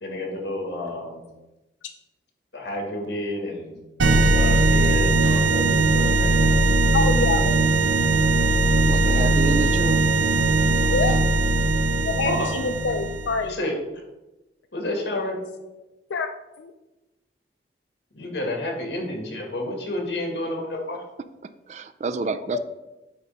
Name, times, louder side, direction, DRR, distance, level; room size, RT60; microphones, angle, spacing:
voice 1, 0.0-1.2 2.5-3.8 4.0-6.6 9.1-9.2 10.8-10.9 12.2-12.5 13.4-13.7 14.7-15.4 18.1-21.0, left 1 dB, 65° left, 1 dB, 1.7 m, -30 dB
sound 1, 4.0-13.4, right 2 dB, 90° right, 0.6 m, -19 dB
voice 2, 6.9-7.8 10.9-11.2 12.0-13.6 16.1-16.3 16.6-16.7 22.5-22.6, left 4 dB, 90° left, 7 dB, 0.4 m, -26 dB
voice 3, 8.9-10.0 21.7-22.6, right 4 dB, 40° right, 12 dB, 0.3 m, -28 dB
8.2 x 2.9 x 5.4 m, 1.0 s
head